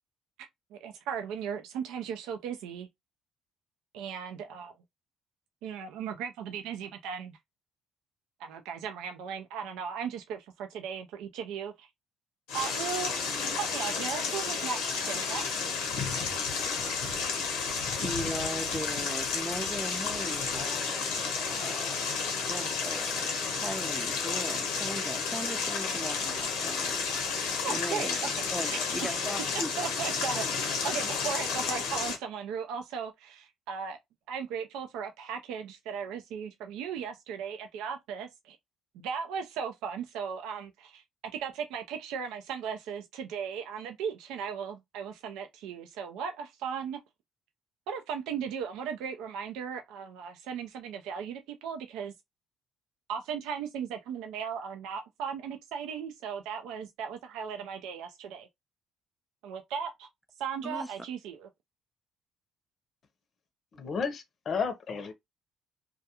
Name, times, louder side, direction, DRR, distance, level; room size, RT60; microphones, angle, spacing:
voice 1, 0.7-2.9 3.9-4.7 5.6-7.4 8.4-11.9 12.5-13.2 13.6-15.4 27.6-28.4 28.7-34.0 34.3-38.6 38.9-41.0 41.4-47.0 47.9-52.1 53.1-58.5 59.4-60.1 60.4-61.5, right 7 dB, 80° right, 0.4 m, -37 dB
sound 1, 12.5-32.2, left 5 dB, 85° left, 0.8 m, -31 dB
voice 2, 17.7-27.0 27.7-28.2 28.5-29.7 60.6-60.9, right 1 dB, 5° right, 0.4 m, -39 dB
voice 3, 63.7-65.1, left 5 dB, 50° left, 0.6 m, -32 dB
2.3 x 2.3 x 2.8 m
supercardioid pair, 70°, 0 cm